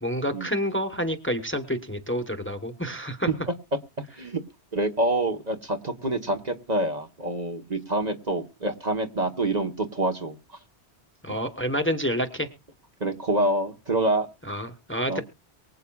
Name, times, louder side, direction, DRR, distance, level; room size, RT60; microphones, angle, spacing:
voice 1, 0.0-3.3 11.2-12.5 14.5-15.2, equal, 10° left, 7 dB, 1.1 m, -28 dB
voice 2, 4.7-10.4 13.0-14.3 15.1-15.2, right 1 dB, 40° right, 5 dB, 1.3 m, -26 dB
24.0 x 8.3 x 2.3 m, 0.27 s
omnidirectional pair, 1.1 m